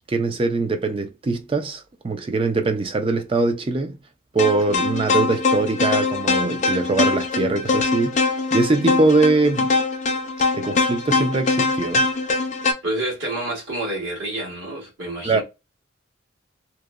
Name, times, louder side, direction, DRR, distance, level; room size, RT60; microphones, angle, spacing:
voice 1, 0.1-4.0 4.3-9.7 10.5-12.0 15.2-15.4, right 3 dB, 25° right, 0.3 m, -22 dB
sound 1, 4.4-12.7, left 3 dB, 35° left, 0.4 m, -22 dB
voice 2, 12.8-15.4, right 1 dB, 70° right, 1.5 m, -28 dB
2.9 x 2.1 x 2.2 m
head